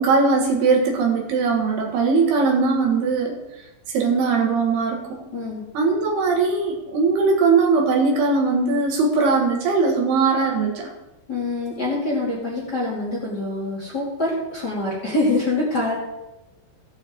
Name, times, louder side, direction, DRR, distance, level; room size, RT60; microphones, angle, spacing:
voice 1, 0.0-3.4 3.9-5.2 5.8-10.9, right 4 dB, 70° right, 1 dB, 3.5 m, -20 dB
voice 2, 5.3-5.6 11.3-16.0, left 2 dB, 30° left, -5 dB, 2.3 m, -25 dB
15.5 x 8.8 x 3.7 m, 0.96 s
omnidirectional pair, 4.9 m